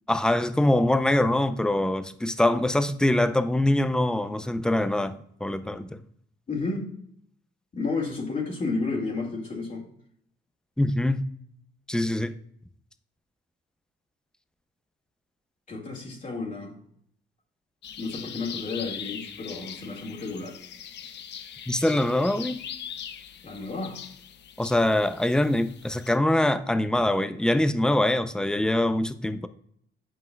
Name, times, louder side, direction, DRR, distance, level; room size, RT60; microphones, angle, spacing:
voice 1, 0.1-5.2 5.4-6.0 10.8-11.3 11.9-12.4 21.7-22.6 24.6-29.5, left 1 dB, 5° left, 0.5 m, -24 dB
voice 2, 6.5-6.9 7.7-9.8 15.7-16.8 18.0-20.6 23.4-24.0, left 3 dB, 40° left, 2.0 m, -31 dB
sound 1, 17.8-26.2, left 9 dB, 60° left, 0.6 m, -41 dB
9.5 x 5.4 x 2.3 m
cardioid pair, 90°, 20 cm